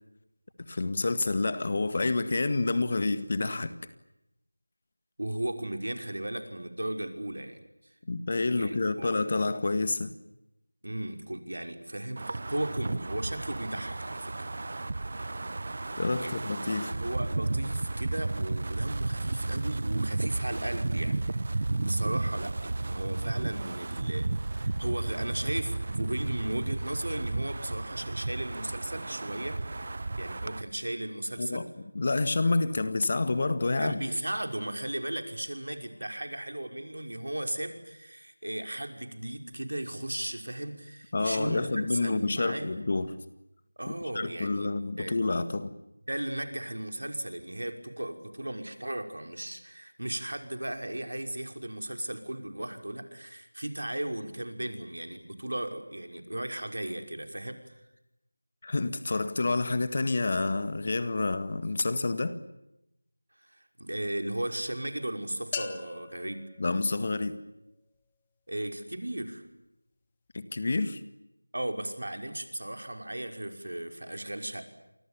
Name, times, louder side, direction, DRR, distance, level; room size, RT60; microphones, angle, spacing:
voice 1, 0.6-3.7 8.1-10.1 16.0-16.9 31.4-31.7 32.0-34.0 41.1-43.2 44.1-45.7 58.6-62.4 66.6-67.4 70.3-71.0, left 3 dB, 30° left, 1.8 m, -28 dB
voice 2, 5.2-7.6 8.5-9.1 10.8-14.5 16.2-29.6 30.2-31.6 33.8-42.8 43.8-45.2 46.1-57.8 63.4-66.5 68.5-69.4 71.5-74.6, right 1 dB, 75° right, 5.8 m, -36 dB
Wind, 12.2-30.6, right 2 dB, 40° right, 1.0 m, -33 dB
sound 1, 65.5-67.5, left 5 dB, 15° left, 1.4 m, -40 dB
30.0 x 25.0 x 7.2 m
figure-of-eight pair, 175°, 0 cm